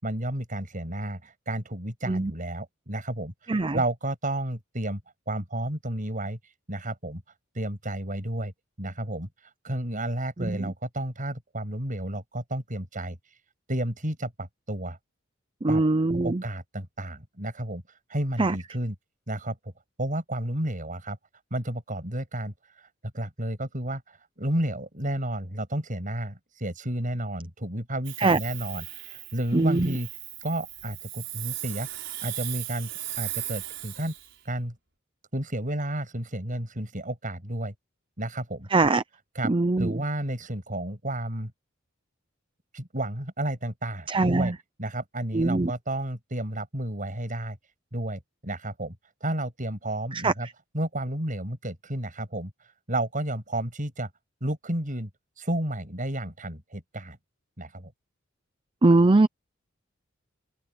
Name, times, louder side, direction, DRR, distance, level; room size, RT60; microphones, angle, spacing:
voice 1, 0.0-3.3 3.7-5.0 5.3-6.4 6.7-7.2 7.5-8.5 8.8-9.3 9.6-13.2 13.7-15.0 15.7-15.8 16.2-17.8 18.1-19.0 19.3-19.6 20.0-21.2 21.5-22.5 23.1-30.1 30.4-31.9 32.2-32.9 33.2-34.1 34.5-34.7 35.3-37.7 38.2-38.7 39.3-41.5 42.7-44.5 44.8-47.6 47.9-49.0 49.2-50.5 50.7-52.5 52.9-54.1 54.4-55.1 55.4-57.2 57.6-57.9, right 1 dB, 40° right, 7.5 m, -31 dB
voice 2, 10.4-10.7 15.6-16.4 18.4-18.5 28.2-28.4 29.5-29.9 38.7-39.0 39.5-39.9 44.1-44.5 45.3-45.7 50.1-50.3 58.8-59.3, right 2 dB, 25° right, 0.6 m, -22 dB
Hiss, 28.0-34.3, right 15 dB, 65° right, 5.1 m, -37 dB
open air
head